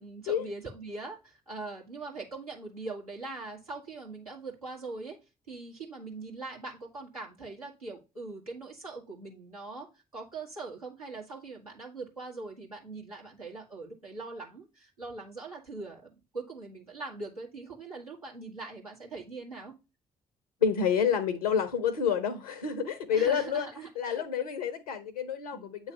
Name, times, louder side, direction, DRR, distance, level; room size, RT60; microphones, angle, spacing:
voice 1, 0.0-5.2 5.5-19.7 23.1-24.2 25.5-25.7, right 3 dB, 90° right, 1.5 m, -42 dB
voice 2, 20.6-25.9, left 7 dB, 80° left, 0.7 m, -29 dB
8.7 x 3.1 x 5.6 m
figure-of-eight pair, 45°, 18 cm